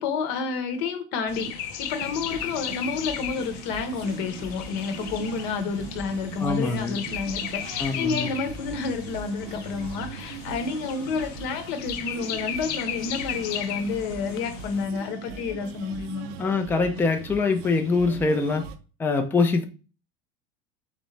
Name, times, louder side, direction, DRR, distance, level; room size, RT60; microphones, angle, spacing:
voice 1, 0.0-16.3, left 5 dB, 65° left, 0.9 m, -30 dB
sound 1, 1.3-14.8, left 9 dB, 85° left, 0.7 m, -36 dB
sound 2, 2.0-18.8, right 6 dB, 75° right, 0.7 m, -40 dB
voice 2, 6.4-7.0 7.8-8.3 16.4-18.6 19.0-19.6, left 4 dB, 10° left, 0.5 m, -24 dB
4.1 x 3.6 x 3.2 m
supercardioid pair, 135°, 20 cm